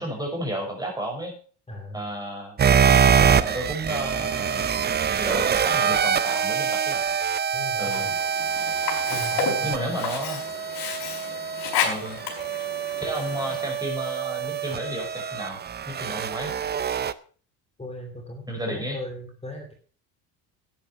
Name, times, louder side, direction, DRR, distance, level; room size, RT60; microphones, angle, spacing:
voice 1, 0.0-1.4 1.9-2.6 3.4-4.7 5.2-7.0 7.8-8.1 9.6-10.4 11.8-12.2 13.0-15.6 15.9-16.5 18.5-19.0, right 1 dB, 10° right, 1 dB, 6.0 m, -32 dB
voice 2, 1.7-2.1 7.5-8.1 9.1-10.0 17.8-19.7, left 1 dB, 15° left, 2 dB, 2.7 m, -38 dB
sound 1, 2.6-17.1, right 7 dB, 25° right, 0.6 m, -25 dB
Sink (filling or washing), 7.8-13.8, left 6 dB, 70° left, 4.7 m, -32 dB
11.0 x 9.4 x 5.7 m, 0.42 s
cardioid pair, 110°, 41 cm